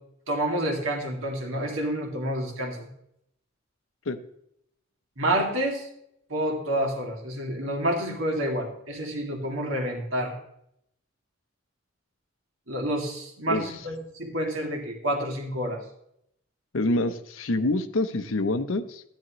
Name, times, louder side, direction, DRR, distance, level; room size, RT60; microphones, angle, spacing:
voice 1, 0.3-2.9 5.2-5.9 6.3-10.4 12.7-15.8, right 1 dB, 90° right, 2 dB, 2.3 m, -28 dB
voice 2, 16.7-19.0, left 2 dB, 80° left, 9 dB, 0.8 m, -26 dB
13.5 x 10.0 x 3.1 m, 0.74 s
head